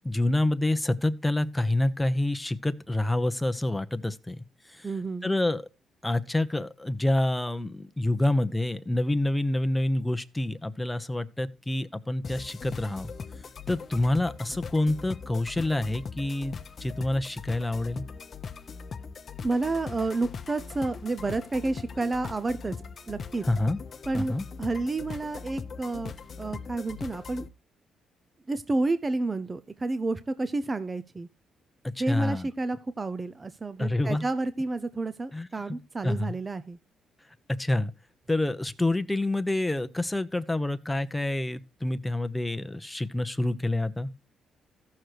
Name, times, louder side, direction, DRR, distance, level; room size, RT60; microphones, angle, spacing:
voice 1, 0.0-4.4 4.8-4.9 5.2-5.6 6.0-13.1 13.7-18.1 23.5-23.8 24.1-24.4 32.0-32.5 33.8-34.2 35.3-35.5 36.0-36.4 37.6-37.9 38.3-44.1, left 1 dB, 10° left, 0.9 m, -27 dB
voice 2, 4.8-5.3 19.4-22.7 23.1-23.4 24.1-26.1 26.4-27.5 28.5-31.3 32.0-36.8, right 3 dB, 25° right, 0.6 m, -30 dB
sound 1, 12.2-27.5, left 5 dB, 45° left, 0.9 m, -40 dB
14.5 x 6.5 x 4.6 m
cardioid pair, 90°, 0 cm